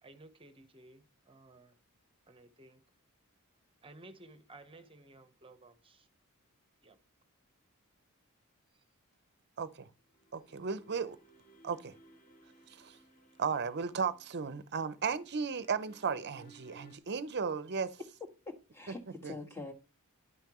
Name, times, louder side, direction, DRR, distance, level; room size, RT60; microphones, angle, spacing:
voice 1, 0.0-1.7 2.3-2.8 3.8-6.1 6.8-7.0 8.7-8.8, right 2 dB, 25° right, 1.0 m, -56 dB
voice 2, 9.6-9.9 10.3-11.2 11.6-11.9 12.8-13.0 13.4-18.0 18.9-19.0 19.2-19.3, right 5 dB, 50° right, 0.7 m, -35 dB
sound 1, 10.0-17.0, right 2 dB, 40° left, 2.2 m, -61 dB
voice 3, 18.4-19.7, left 3 dB, 10° left, 1.7 m, -44 dB
11.0 x 5.6 x 3.0 m
head